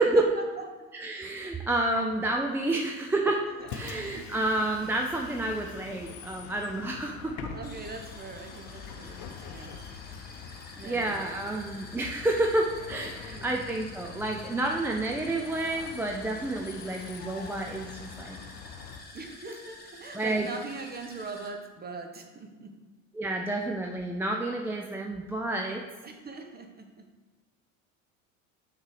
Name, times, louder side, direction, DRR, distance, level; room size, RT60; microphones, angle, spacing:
voice 1, 0.0-0.9 2.7-2.8 3.6-4.4 5.4-5.5 7.5-9.8 10.8-11.3 13.1-13.5 19.1-22.8 26.0-27.1, right 3 dB, 20° right, 5 dB, 1.0 m, -42 dB
voice 2, 1.0-3.4 3.7-7.5 10.8-18.4 20.1-20.4 23.2-25.8, right 2 dB, 5° right, 1 dB, 0.3 m, -29 dB
sound 1, 3.4-21.5, left 2 dB, 25° left, 1.5 m, -50 dB
Bus, 3.6-19.0, left 6 dB, 60° left, 0.8 m, -44 dB
6.2 x 3.8 x 4.8 m, 1.3 s
hypercardioid pair, 70°, 42 cm